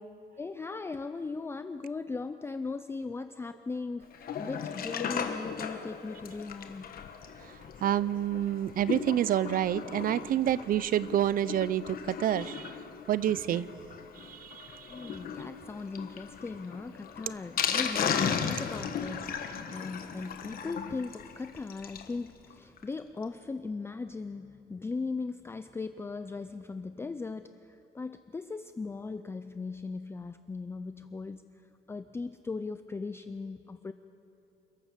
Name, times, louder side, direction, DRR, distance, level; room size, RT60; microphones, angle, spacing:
voice 1, 0.4-7.0 9.9-10.0 14.9-31.5 31.9-33.9, left 4 dB, 15° left, 10 dB, 0.4 m, -38 dB
Sink (filling or washing), 4.1-22.1 22.5-22.6 22.8-22.9 23.2-23.3, left 7 dB, 55° left, 1.3 m, -36 dB
voice 2, 7.8-12.7 13.1-13.7 14.3-14.5, right 11 dB, 50° right, 18 dB, 0.5 m, -28 dB
28.0 x 12.5 x 7.4 m, 2.9 s
cardioid pair, 150°, 18 cm